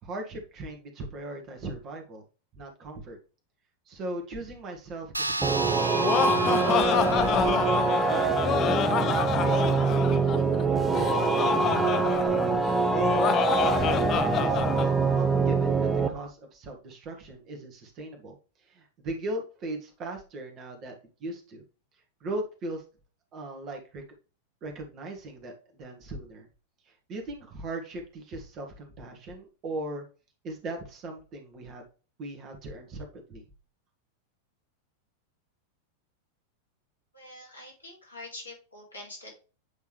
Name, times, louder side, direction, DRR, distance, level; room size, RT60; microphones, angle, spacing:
voice 1, 0.0-2.2 2.5-3.2 3.9-5.9 6.6-12.8 13.3-18.3 18.6-20.9 21.2-21.6 22.2-22.8 23.3-24.0 24.6-26.5 26.9-30.0 30.4-31.8 32.2-33.4, right 2 dB, 35° right, 3 dB, 1.6 m, -39 dB
sound 1, 5.1-10.0, right 2 dB, 85° right, 0.3 m, -35 dB
sound 2, 5.4-16.1, right 4 dB, 10° right, 0.8 m, -24 dB
Laughter, 5.7-14.9, left 9 dB, 30° left, 0.5 m, -28 dB
voice 2, 37.1-39.4, left 2 dB, 80° left, -2 dB, 2.6 m, -45 dB
8.3 x 3.6 x 3.2 m, 0.35 s
figure-of-eight pair, 90°, 0 cm